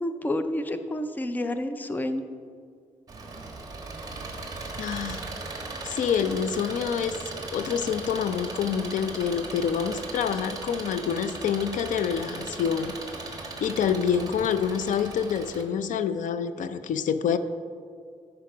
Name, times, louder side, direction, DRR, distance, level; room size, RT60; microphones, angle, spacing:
voice 1, 0.0-2.2, left 1 dB, 15° left, 9 dB, 0.5 m, -29 dB
Engine, 3.1-15.6, right 3 dB, 30° right, 1.3 m, -38 dB
voice 2, 4.8-5.2 5.8-7.2 7.5-13.0 13.3-17.4, left 7 dB, 85° left, 11 dB, 0.5 m, -27 dB
13.0 x 5.1 x 6.0 m, 2.1 s
wide cardioid pair, 160°, 13 cm